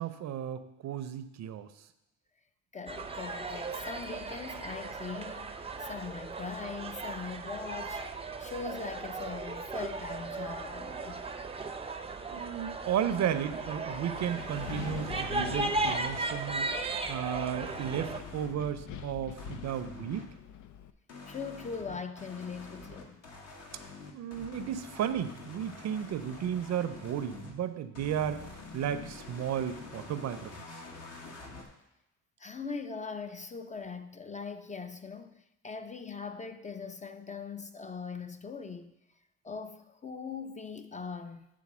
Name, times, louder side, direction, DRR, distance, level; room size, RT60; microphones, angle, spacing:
voice 1, 0.0-1.7 12.3-16.7 17.1-20.3 24.1-28.4 28.7-30.6, right 9 dB, 60° right, 0.6 m, -34 dB
voice 2, 2.7-8.1 8.4-11.2 21.3-23.2 32.4-38.9 39.4-41.5, left 5 dB, 25° left, 0.5 m, -41 dB
sound 1, 2.9-18.2, right 3 dB, 20° right, 0.6 m, -36 dB
Wind, 13.6-20.9, left 8 dB, 75° left, 0.5 m, -45 dB
sound 2, 14.2-15.1 17.7-18.6 19.4-20.3 21.1-27.6 27.9-31.6, left 3 dB, 55° left, 1.5 m, -47 dB
8.5 x 3.8 x 6.1 m
cardioid pair, 90°, 30 cm